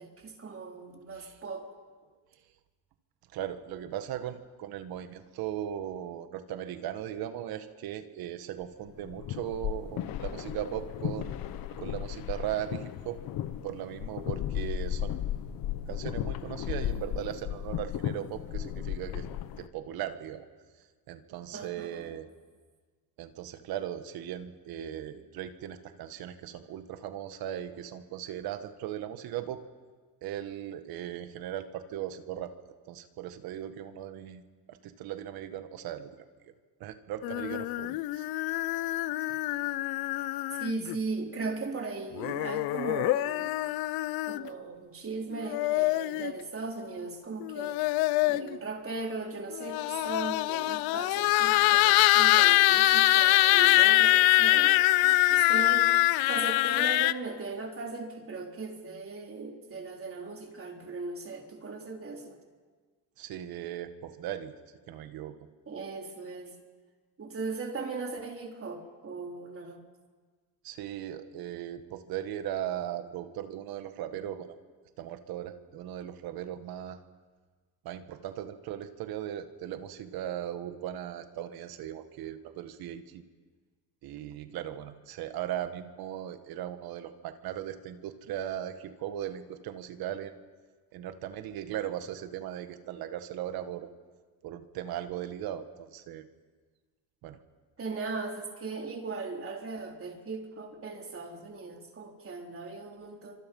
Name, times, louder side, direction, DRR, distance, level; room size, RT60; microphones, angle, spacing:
voice 1, 0.0-1.6 21.5-22.1 40.6-43.5 44.3-47.8 48.3-55.9 56.3-62.4 65.7-66.5 67.2-69.8 97.8-103.4, right 3 dB, 40° right, 2 dB, 4.0 m, -38 dB
voice 2, 3.3-11.5 11.8-13.2 13.6-15.3 15.9-19.3 19.6-20.5 21.1-22.3 23.2-29.6 30.2-32.5 32.9-34.4 34.7-36.1 36.8-38.3 39.3-39.4 63.2-64.5 64.9-65.4 70.6-74.6 75.0-77.0 77.8-83.2 84.0-90.4 90.9-93.9 94.4-96.3 97.2-97.4, right 11 dB, 85° right, 9 dB, 1.8 m, -38 dB
sound 1, 8.9-19.7, left 11 dB, 75° left, 1.2 m, -35 dB
sound 2, 37.2-40.9 42.2-44.5 45.3-46.3 47.4-48.6 49.6-57.1, left 18 dB, 90° left, 0.7 m, -24 dB
28.0 x 25.5 x 5.6 m, 1.4 s
cardioid pair, 105°, 36 cm